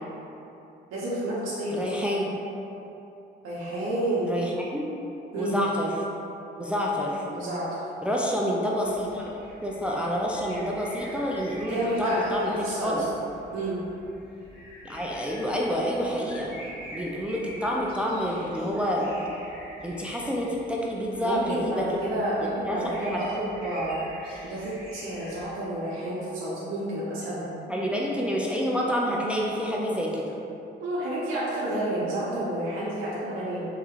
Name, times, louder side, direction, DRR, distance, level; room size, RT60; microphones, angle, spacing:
voice 1, 0.9-1.8 3.4-4.3 5.3-5.6 7.3-7.7 11.7-12.9 13.5-13.8 21.1-24.0 24.4-27.4 30.8-33.7, right 1 dB, 90° right, -8 dB, 0.7 m, -30 dB
voice 2, 1.7-2.3 4.2-4.9 5.4-5.9 6.6-7.3 8.0-9.3 9.6-13.1 14.8-16.5 16.9-19.1 19.8-21.9 22.6-23.2 27.7-30.3, equal, 5° right, -3 dB, 0.3 m, -28 dB
sound 1, 8.8-25.5, equal, 25° left, 1.3 m, -46 dB
3.6 x 3.0 x 2.3 m, 2.9 s
cardioid pair, 90°, 20 cm